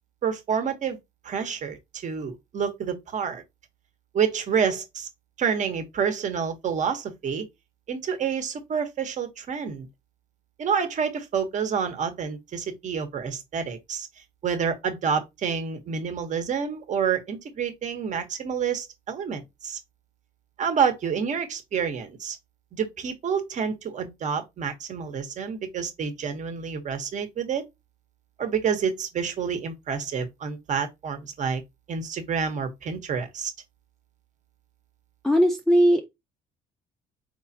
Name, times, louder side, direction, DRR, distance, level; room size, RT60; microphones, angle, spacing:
voice 1, 0.2-1.0 1.2-3.4 4.1-5.1 5.4-7.5 7.9-9.9 10.6-14.1 14.4-19.8 20.6-22.4 22.7-27.6 28.4-31.6 31.9-33.5, right 6 dB, 45° right, 1.1 m, -28 dB
voice 2, 35.2-36.1, equal, 5° left, 0.6 m, -19 dB
4.3 x 3.2 x 2.7 m
cardioid pair, 110°, 17 cm